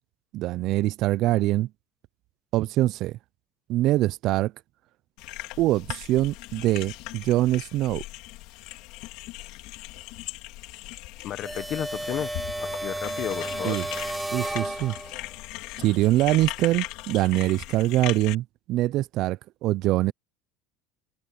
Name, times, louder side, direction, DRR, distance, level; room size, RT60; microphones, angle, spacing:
voice 1, 0.3-1.7 2.5-3.2 3.7-4.5 5.6-8.0 13.6-13.9 14.3-15.0 15.8-20.1, right 16 dB, 55° right, 0.4 m, -24 dB
sound 1, 5.2-18.3, left 19 dB, 70° left, 2.6 m, -39 dB
voice 2, 11.2-13.8, left 12 dB, 50° left, 1.1 m, -33 dB
sound 2, 11.4-15.3, right 1 dB, 5° right, 0.6 m, -33 dB
supercardioid pair, 125°, 0 cm